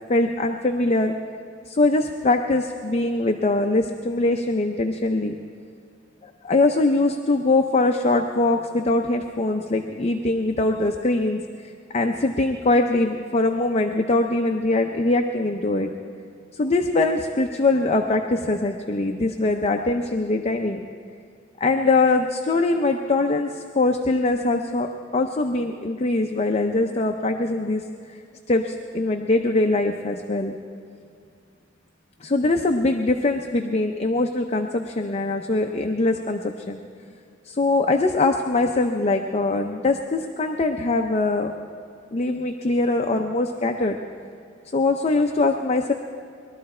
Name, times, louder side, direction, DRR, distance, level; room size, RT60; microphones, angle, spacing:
voice 1, 0.1-1.1 1.7-5.4 6.2-15.9 16.5-20.8 21.6-24.9 25.1-27.8 28.5-30.6 32.2-36.8 37.5-41.5 42.1-44.0 44.7-45.9, left 2 dB, 35° left, 4 dB, 0.6 m, -22 dB
21.0 x 12.5 x 4.3 m, 2.3 s
head